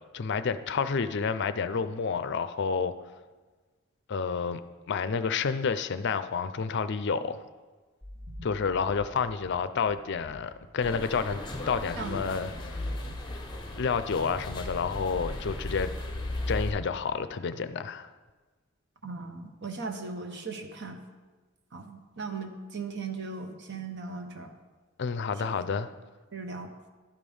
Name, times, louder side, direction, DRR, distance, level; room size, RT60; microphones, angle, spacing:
voice 1, 0.1-2.9 4.1-4.6 4.9-7.4 8.4-11.4 11.7-12.8 13.8-15.9 16.5-18.1 25.0-25.9, left 5 dB, 55° left, 0.5 m, -29 dB
sound 1, 8.0-11.5, left 1 dB, 15° right, 1.5 m, -48 dB
sound 2, 10.8-16.7, left 1 dB, 20° left, 1.0 m, -36 dB
voice 2, 19.0-21.0 21.7-24.5 26.3-26.7, right 4 dB, 55° right, 0.9 m, -38 dB
12.0 x 5.1 x 5.5 m
head